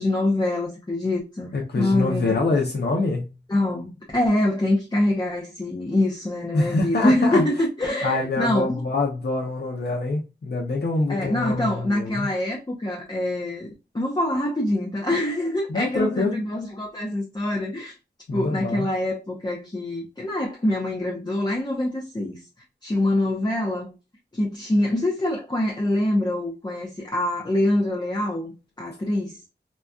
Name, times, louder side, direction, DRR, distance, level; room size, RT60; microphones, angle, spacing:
voice 1, 0.0-2.5 3.5-8.8 11.1-17.9 18.3-22.4 22.8-23.9 24.3-29.4, left 1 dB, 25° left, 0.7 m, -25 dB
voice 2, 1.5-3.3 6.5-7.4 8.0-12.3 15.7-16.4 18.3-18.8, left 3 dB, 65° left, 0.7 m, -25 dB
4.0 x 2.3 x 2.2 m
wide cardioid pair, 80°, 18 cm